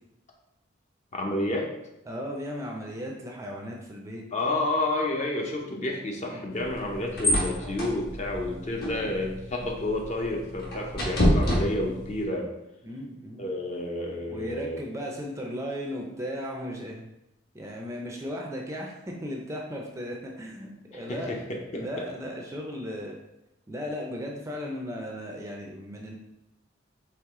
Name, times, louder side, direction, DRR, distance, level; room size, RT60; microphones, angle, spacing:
voice 1, 1.1-1.7 4.3-12.5 13.4-14.8 20.9-21.9, left 1 dB, 35° left, 0 dB, 0.7 m, -30 dB
voice 2, 2.1-4.2 6.3-6.4 8.9-9.1 12.8-13.5 14.3-17.1 17.5-21.3 21.7-23.2 23.7-26.2, equal, 15° right, 0 dB, 0.5 m, -36 dB
sound 1, 6.5-12.3, equal, 55° left, 1.2 m, -29 dB
4.7 x 3.0 x 3.6 m, 0.90 s
head